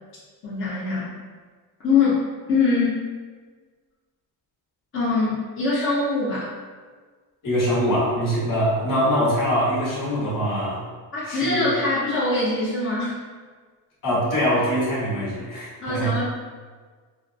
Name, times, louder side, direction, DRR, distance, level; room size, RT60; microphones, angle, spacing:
voice 1, 0.4-1.1 1.8-2.2 2.5-3.0 4.9-6.5 11.1-13.2 15.8-16.2, left 3 dB, 35° left, -10 dB, 0.9 m, -23 dB
voice 2, 7.4-10.8 11.3-11.7 14.0-16.1, equal, 55° left, -8 dB, 1.5 m, -23 dB
4.0 x 2.1 x 2.6 m, 1.5 s
cardioid pair, 115°, 38 cm